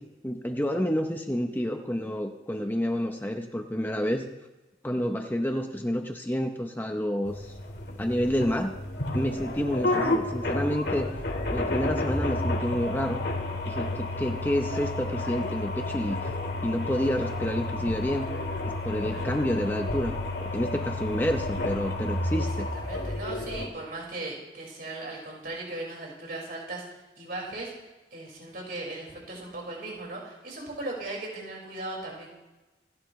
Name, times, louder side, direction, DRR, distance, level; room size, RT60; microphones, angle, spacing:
voice 1, 0.0-4.3 4.8-7.5 8.0-8.7 9.1-11.1 11.5-13.3 13.7-16.2 16.6-18.3 18.7-22.7, equal, 10° left, 4 dB, 0.8 m, -29 dB
sound 1, 7.2-23.7, left 2 dB, 70° left, 2.2 m, -31 dB
voice 2, 19.1-19.4 22.4-22.5 22.7-26.8 27.2-27.7 28.1-32.3, right 2 dB, 55° right, -2 dB, 5.3 m, -38 dB
27.5 x 10.5 x 3.2 m, 1.1 s
head